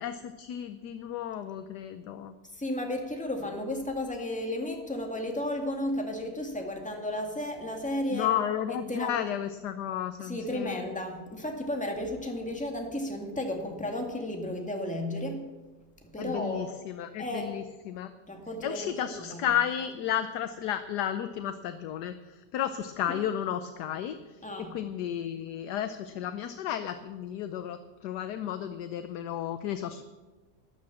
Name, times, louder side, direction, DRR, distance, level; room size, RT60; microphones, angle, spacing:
voice 1, 0.0-2.3 8.1-10.8 16.2-18.1 18.6-22.1 22.5-24.2 24.6-30.0, left 10 dB, 75° left, 10 dB, 1.2 m, -33 dB
voice 2, 2.6-8.3 8.9-9.1 10.2-15.5 16.1-16.7 17.2-17.5 18.3-19.5 23.0-23.2 24.4-24.8, left 1 dB, 5° left, 2 dB, 1.9 m, -33 dB
12.5 x 10.5 x 7.2 m, 1.2 s
omnidirectional pair, 1.9 m